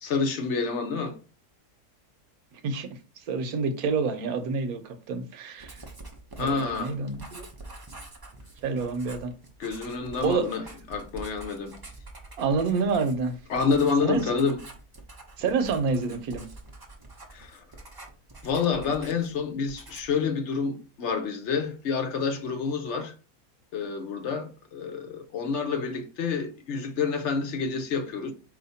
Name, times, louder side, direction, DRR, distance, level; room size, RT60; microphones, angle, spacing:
voice 1, 0.0-1.2 6.4-7.0 9.6-10.6 10.9-11.7 13.5-14.6 17.3-17.6 18.4-23.1 23.7-28.3, left 5 dB, 60° left, 0.8 m, -28 dB
voice 2, 2.5-5.8 6.4-7.5 8.6-9.3 10.2-10.5 12.4-13.4 14.0-14.2 15.4-16.5, right 4 dB, 70° right, 1.2 m, -28 dB
Writing, 5.6-19.4 19.7-20.2, right 2 dB, 30° right, 0.4 m, -46 dB
4.5 x 2.8 x 4.1 m
omnidirectional pair, 1.7 m